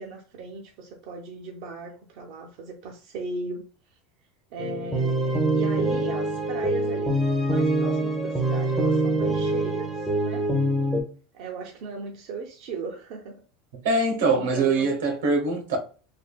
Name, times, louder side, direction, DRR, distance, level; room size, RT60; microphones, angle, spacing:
voice 1, 0.0-4.0 4.5-7.2 7.5-10.5 11.3-13.4 14.3-15.0, right 4 dB, 65° right, 0.5 m, -36 dB
sound 1, 4.6-11.0, right 1 dB, 5° right, 0.6 m, -24 dB
voice 2, 13.8-15.8, right 3 dB, 85° right, 0.9 m, -23 dB
3.1 x 2.3 x 2.3 m
supercardioid pair, 135°, 0 cm